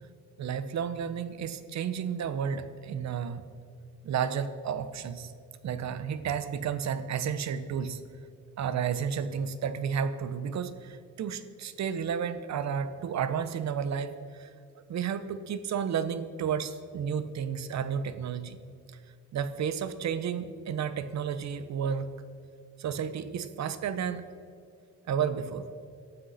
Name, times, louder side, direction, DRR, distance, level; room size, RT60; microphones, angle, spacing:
voice 1, 0.4-3.5 4.0-5.3 5.6-8.0 8.6-14.1 14.4-14.5 14.9-18.6 19.3-22.1 22.8-24.2 25.1-25.7, right 7 dB, 65° right, 12 dB, 1.1 m, -32 dB
18.0 x 12.5 x 4.3 m, 2.4 s
cardioid pair, 90°, 30 cm